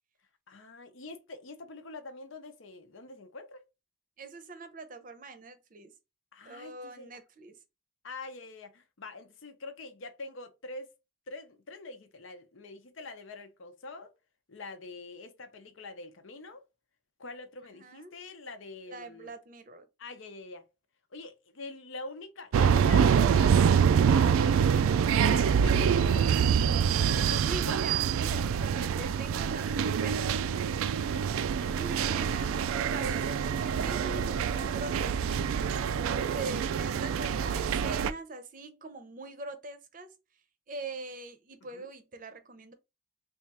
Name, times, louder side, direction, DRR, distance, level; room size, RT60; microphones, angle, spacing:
voice 1, 0.5-3.6 6.3-7.1 8.0-10.9 11.3-14.1 14.5-16.6 17.2-19.3 20.0-20.7 21.1-24.7 25.3-26.3 26.6-27.8 28.7-28.8 31.0-31.3 41.7-41.9, left 3 dB, 75° left, 0.7 m, -45 dB
voice 2, 4.2-5.9 6.4-7.6 17.7-18.2 18.9-19.9 27.4-30.4 31.6-35.5 36.0-40.2 40.7-42.7, right 3 dB, 40° right, 0.6 m, -42 dB
sound 1, 22.5-38.1, right 7 dB, 90° right, 0.3 m, -26 dB
3.4 x 2.4 x 4.1 m
head